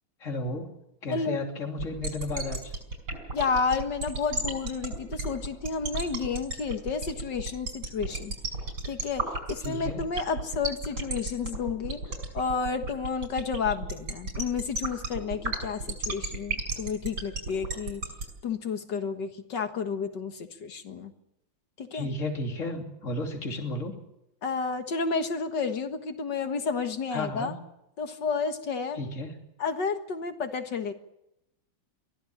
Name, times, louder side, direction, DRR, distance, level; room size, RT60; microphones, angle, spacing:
voice 1, 0.2-0.7 1.0-2.7 9.6-10.0 21.9-23.9 27.1-27.5 28.9-29.3, left 2 dB, 40° left, 2 dB, 3.3 m, -33 dB
voice 2, 1.1-1.5 3.3-8.3 8.8-12.0 12.3-18.0 18.4-21.1 21.8-22.1 24.4-27.5 28.0-29.0 29.6-30.9, left 5 dB, 65° left, 7 dB, 2.2 m, -31 dB
sound 1, 1.8-18.2, right 3 dB, 90° right, 6.4 m, -31 dB
23.5 x 15.5 x 8.8 m, 0.84 s
omnidirectional pair, 2.1 m